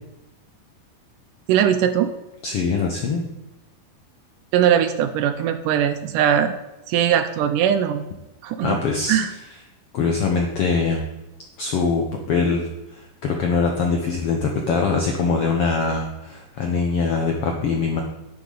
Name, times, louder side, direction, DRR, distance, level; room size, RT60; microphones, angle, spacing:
voice 1, 1.5-2.1 4.5-6.5 6.9-8.1 8.4-8.8 9.1-9.3, right 9 dB, 80° right, 10 dB, 2.1 m, -20 dB
voice 2, 2.4-3.3 8.6-9.2 9.9-11.0 11.6-18.0, left 4 dB, 75° left, 2 dB, 1.4 m, -23 dB
10.5 x 9.8 x 4.0 m, 0.99 s
omnidirectional pair, 4.0 m